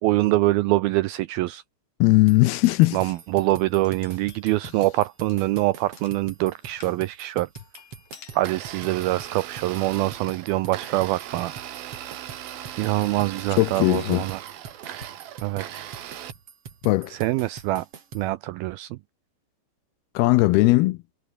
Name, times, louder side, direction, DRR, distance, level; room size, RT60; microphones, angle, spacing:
voice 1, 0.0-1.6 2.9-7.5 8.4-11.5 12.7-14.4 15.4-15.9 17.1-17.9 18.1-19.0, right 18 dB, 85° right, 2.2 m, -24 dB
voice 2, 2.0-3.0 13.6-14.2 16.8-17.2 20.2-21.0, left 20 dB, 80° left, 2.4 m, -18 dB
sound 1, 2.3-18.3, right 7 dB, 40° right, 3.1 m, -44 dB
sound 2, 2.5-7.0 7.5-8.4, left 9 dB, 60° left, 4.3 m, -52 dB
Domestic sounds home sounds, 8.3-16.3, right 11 dB, 65° right, 3.3 m, -39 dB
omnidirectional pair, 4.9 m